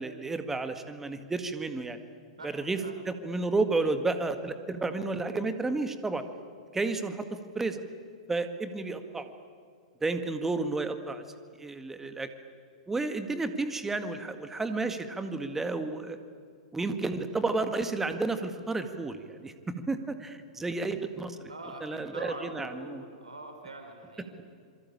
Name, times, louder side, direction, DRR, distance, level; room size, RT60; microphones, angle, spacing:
voice 1, 0.0-2.0 2.4-2.8 3.1-6.2 6.7-7.8 8.3-9.3 10.0-11.2 11.6-12.3 12.9-16.2 16.7-21.5 21.8-23.0, right 3 dB, 10° right, 9 dB, 1.9 m, -31 dB
voice 2, 2.4-3.0 21.5-24.4, right 2 dB, 75° right, 5 dB, 3.8 m, -44 dB
27.0 x 23.5 x 8.8 m, 2.2 s
figure-of-eight pair, 100°, 4 cm